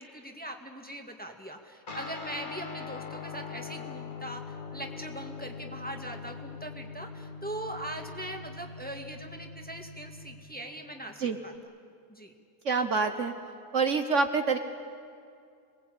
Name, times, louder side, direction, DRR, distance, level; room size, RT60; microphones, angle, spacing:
voice 1, 0.0-11.5 12.1-12.3, right 1 dB, 5° left, 3 dB, 1.8 m, -41 dB
Guitar, 1.9-11.6, left 4 dB, 35° left, 1.6 m, -42 dB
voice 2, 12.6-13.3 13.7-14.6, right 4 dB, 55° right, 6 dB, 1.4 m, -26 dB
27.5 x 20.5 x 8.6 m, 2.3 s
omnidirectional pair, 1.6 m